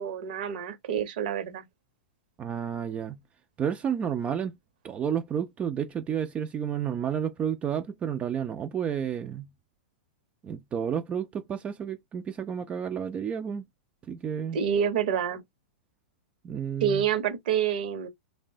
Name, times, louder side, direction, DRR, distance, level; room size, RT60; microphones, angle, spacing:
voice 1, 0.0-1.7 14.5-15.4 16.8-18.1, right 8 dB, 60° right, 0.8 m, -27 dB
voice 2, 2.4-3.2 3.6-4.5 4.8-9.5 10.4-13.6 14.1-14.6 16.4-17.0, right 8 dB, 25° right, 0.4 m, -31 dB
3.2 x 2.1 x 2.6 m
hypercardioid pair, 105°, 5 cm